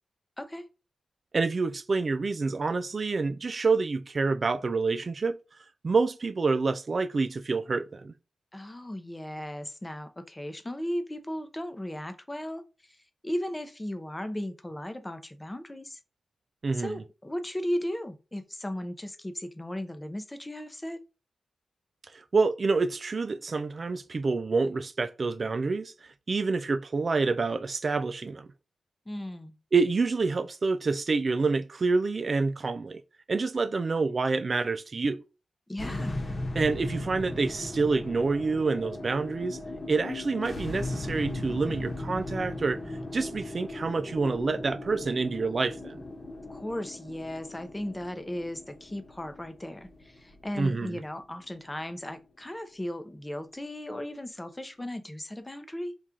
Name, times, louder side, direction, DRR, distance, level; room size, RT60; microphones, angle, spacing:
voice 1, 1.3-5.4 5.8-8.1 16.6-17.0 22.1-28.5 29.7-33.0 33.3-35.2 36.6-39.6 39.9-42.8 43.1-46.0 50.6-51.0, right 4 dB, 45° right, 0.3 m, -27 dB
voice 2, 8.5-16.0 16.7-21.0 29.1-29.6 35.7-36.2 46.5-55.9, left 1 dB, 15° left, 0.6 m, -36 dB
sound 1, 35.8-52.2, left 2 dB, 35° left, 1.0 m, -38 dB
4.3 x 2.4 x 3.6 m
cardioid pair, 80°, 0 cm